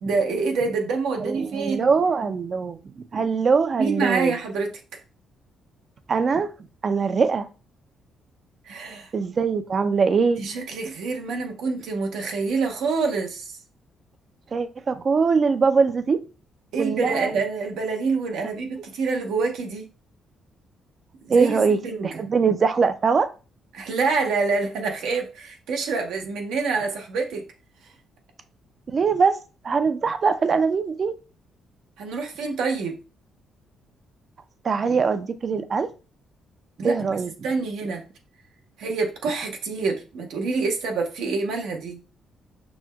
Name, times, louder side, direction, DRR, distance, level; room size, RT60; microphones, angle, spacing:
voice 1, 0.0-1.9 3.8-5.0 8.6-9.1 10.4-13.6 16.7-19.9 21.2-21.6 21.8-22.2 23.7-27.4 27.8-27.9 32.0-33.0 36.8-37.2 37.4-38.0 38.8-42.0, right 4 dB, 85° right, 0.8 m, -26 dB
voice 2, 1.2-2.8 3.1-4.4 6.1-6.5 6.8-7.5 9.1-10.4 14.5-16.2 16.8-17.3 21.3-23.3 28.9-29.4 29.6-31.1 34.6-35.9 36.8-37.3, right 5 dB, 35° right, 0.4 m, -22 dB
6.0 x 2.1 x 2.2 m
cardioid pair, 130°, 0 cm